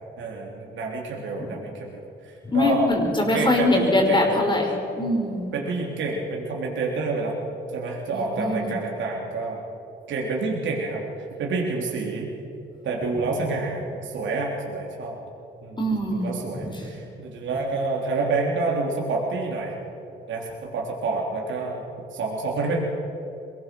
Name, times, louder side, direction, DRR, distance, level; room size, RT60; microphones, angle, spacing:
voice 1, 0.2-2.9 3.3-4.3 5.5-7.3 7.7-9.6 10.1-11.0 11.4-12.3 12.8-15.1 15.6-15.8 16.1-19.7 20.3-21.8 22.1-22.8, right 3 dB, 70° right, -1 dB, 3.5 m, -28 dB
voice 2, 2.4-5.4 8.1-8.7 15.8-16.3 16.6-16.9, left 1 dB, 25° left, 1 dB, 5.5 m, -23 dB
23.0 x 19.5 x 6.3 m, 2.9 s
cardioid pair, 90°, 20 cm